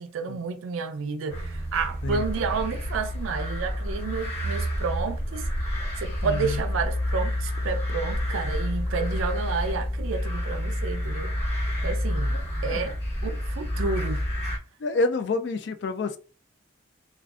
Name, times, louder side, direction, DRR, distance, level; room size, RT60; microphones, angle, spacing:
voice 1, 0.0-5.5 6.0-11.3 11.8-12.3 12.6-14.2, right 5 dB, 80° right, 0.4 m, -30 dB
sound 1, 1.3-14.6, equal, 15° left, 1.0 m, -29 dB
voice 2, 6.2-6.6 12.3-12.8 14.8-16.2, left 3 dB, 55° left, 0.3 m, -28 dB
2.5 x 2.2 x 2.3 m
head